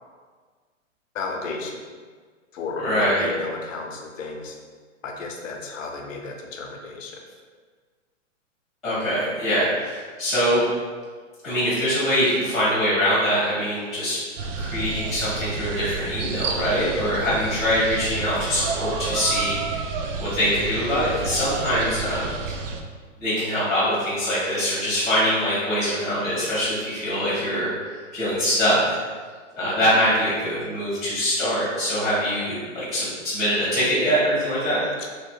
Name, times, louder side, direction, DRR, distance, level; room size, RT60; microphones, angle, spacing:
voice 1, 1.1-1.8 2.5-4.6 5.0-7.2 35.0-35.1, left 3 dB, 80° left, 2 dB, 0.7 m, -33 dB
voice 2, 2.8-3.2 8.8-10.6 11.4-14.2 14.6-19.8 20.2-22.3 23.2-27.7 28.1-29.0 29.6-34.8, equal, ahead, -20 dB, 0.3 m, -23 dB
sound 1, 14.4-22.8, right 4 dB, 70° right, 0.5 m, -30 dB
2.9 x 2.1 x 3.1 m, 1.5 s
hypercardioid pair, 145°, 38 cm